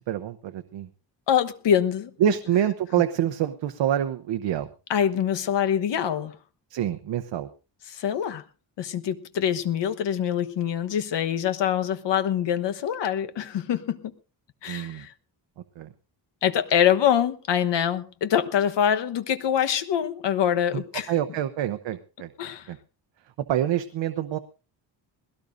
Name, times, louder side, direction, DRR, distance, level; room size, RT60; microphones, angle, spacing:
voice 1, 0.1-0.9 2.2-4.7 6.7-7.5 14.7-15.0 15.8-15.9 20.7-20.8 21.1-22.3 22.7-22.8 23.5-24.4, right 11 dB, 80° right, 0.9 m, -26 dB
voice 2, 1.3-2.1 4.9-6.4 7.9-8.4 8.8-14.1 14.6-15.1 16.4-21.1 22.4-22.7, left 9 dB, 75° left, 1.2 m, -24 dB
20.5 x 17.0 x 2.6 m
wide cardioid pair, 150°, 44 cm